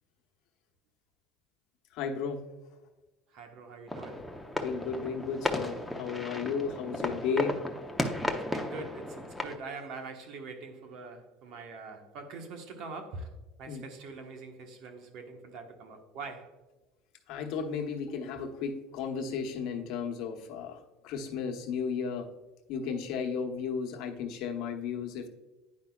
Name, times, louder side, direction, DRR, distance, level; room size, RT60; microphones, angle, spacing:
voice 1, 1.9-2.4 4.6-7.6 13.7-13.8 17.3-22.3 22.7-25.3, left 6 dB, 65° left, 2 dB, 1.0 m, -34 dB
voice 2, 3.3-4.2 8.3-13.3 13.6-16.5, right 3 dB, 60° right, 5 dB, 1.2 m, -43 dB
sound 1, 3.9-9.6, left 1 dB, ahead, 0.7 m, -35 dB
9.7 x 5.3 x 2.3 m, 1.2 s
supercardioid pair, 115°, 0 cm